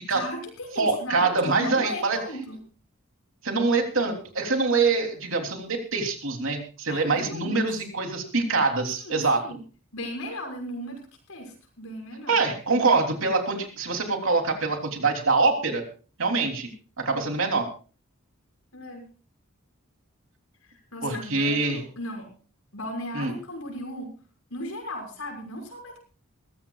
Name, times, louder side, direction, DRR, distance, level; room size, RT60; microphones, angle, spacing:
voice 1, 0.1-2.6 4.8-4.9 6.9-7.7 9.0-9.6 9.9-12.4 18.7-19.0 20.6-22.3 22.7-24.1 24.5-26.0, left 1 dB, 80° left, 2 dB, 6.3 m, -36 dB
voice 2, 0.8-2.2 3.4-9.4 12.3-15.8 16.2-16.7 17.0-17.7 21.0-21.8 23.1-23.3, right 3 dB, 65° right, 3 dB, 3.3 m, -24 dB
22.0 x 15.5 x 2.4 m, 0.36 s
head